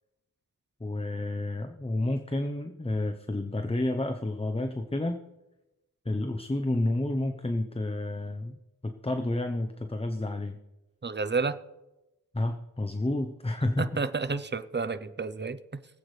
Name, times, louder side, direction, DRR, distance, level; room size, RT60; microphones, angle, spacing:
voice 1, 0.8-5.2 6.0-8.5 8.8-10.6 12.3-13.8, left 1 dB, 15° left, 6 dB, 0.7 m, -30 dB
voice 2, 11.0-11.6 13.8-15.6, right 4 dB, 30° right, 12 dB, 0.6 m, -30 dB
23.5 x 8.5 x 3.2 m, 0.99 s
wide cardioid pair, 70°, 36 cm